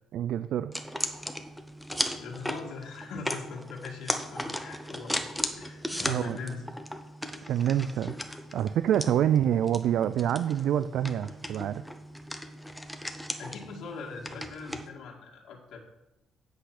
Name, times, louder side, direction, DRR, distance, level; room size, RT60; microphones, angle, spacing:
voice 1, 0.1-0.7 6.0-6.4 7.5-8.1 8.5-11.8, right 10 dB, 65° right, 13 dB, 0.3 m, -26 dB
sound 1, 0.7-14.9, equal, ahead, 0.8 m, -37 dB
voice 2, 2.2-5.2 5.5-6.6 9.0-9.3 13.4-15.8, left 5 dB, 70° left, -1 dB, 1.9 m, -41 dB
8.4 x 8.2 x 5.9 m, 0.97 s
cardioid pair, 160°, 0 cm